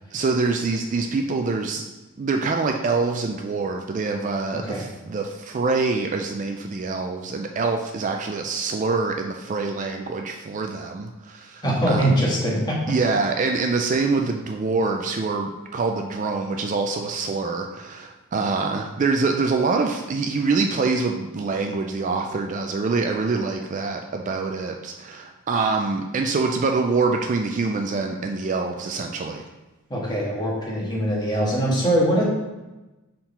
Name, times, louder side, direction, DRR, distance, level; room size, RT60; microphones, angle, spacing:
voice 1, 0.1-1.9 2.2-12.1 12.9-29.4, right 4 dB, 35° right, 3 dB, 0.3 m, -25 dB
voice 2, 11.6-12.8 29.9-32.2, right 1 dB, 20° left, -5 dB, 1.5 m, -22 dB
4.5 x 3.8 x 5.4 m, 1.1 s
head